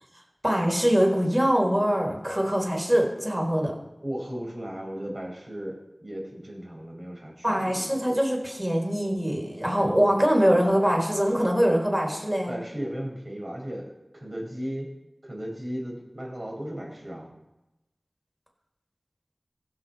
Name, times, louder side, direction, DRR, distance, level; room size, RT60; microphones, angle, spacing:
voice 1, 0.4-3.7 7.4-12.5, equal, 20° right, 0 dB, 4.1 m, -23 dB
voice 2, 4.0-7.9 12.5-14.9 15.2-17.3, equal, 55° right, -1 dB, 5.2 m, -36 dB
23.0 x 7.8 x 4.4 m, 0.94 s
wide cardioid pair, 50°, 0 cm